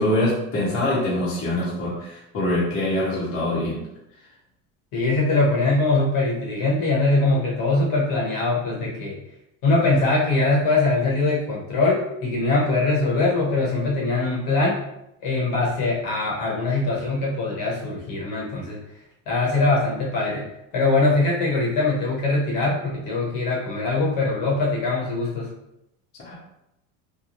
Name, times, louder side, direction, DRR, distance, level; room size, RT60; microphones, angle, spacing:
voice 1, 0.0-3.8 26.2-26.4, left 1 dB, 35° left, -6 dB, 1.0 m, -24 dB
voice 2, 4.9-9.2 9.6-14.8 15.2-18.8 19.3-20.4 20.7-25.5, left 2 dB, 55° left, -4 dB, 1.2 m, -22 dB
3.0 x 2.3 x 2.5 m, 0.84 s
supercardioid pair, 110°, 40 cm